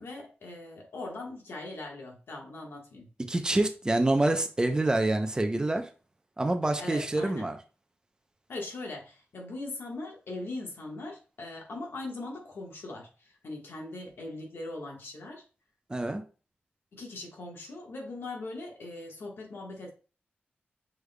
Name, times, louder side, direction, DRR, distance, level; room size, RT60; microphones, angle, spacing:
voice 1, 0.0-3.1 6.8-7.5 8.5-15.4 16.9-19.9, left 2 dB, 75° left, 1.4 m, -40 dB
voice 2, 3.3-5.9 6.4-7.6 15.9-16.2, right 2 dB, 20° right, 0.6 m, -26 dB
6.4 x 3.3 x 2.3 m
wide cardioid pair, 105°, 4 cm